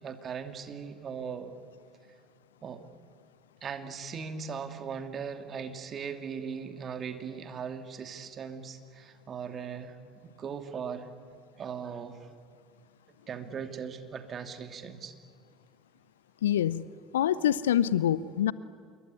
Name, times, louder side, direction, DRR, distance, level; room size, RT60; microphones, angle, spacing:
voice 1, 0.0-1.5 2.6-2.8 3.6-11.1 11.6-12.3 13.3-15.1, right 6 dB, 35° right, 7 dB, 2.6 m, -39 dB
voice 2, 16.4-16.9 17.1-18.5, left 10 dB, 75° left, 19 dB, 0.6 m, -25 dB
27.0 x 22.5 x 9.5 m, 2.2 s
figure-of-eight pair, 65°, 0 cm